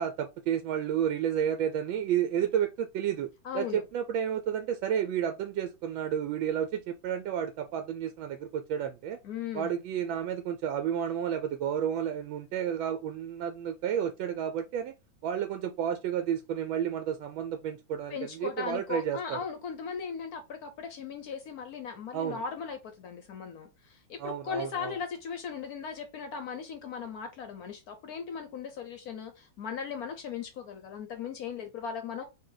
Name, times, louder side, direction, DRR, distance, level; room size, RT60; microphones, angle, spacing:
voice 1, 0.0-3.3 3.5-9.2 9.5-14.9 15.2-19.4 22.1-22.4 24.2-25.0, right 9 dB, 85° right, 1.3 m, -31 dB
voice 2, 3.4-3.8 9.2-9.8 18.1-32.2, left 6 dB, 65° left, 0.9 m, -38 dB
3.8 x 2.6 x 3.8 m
omnidirectional pair, 2.1 m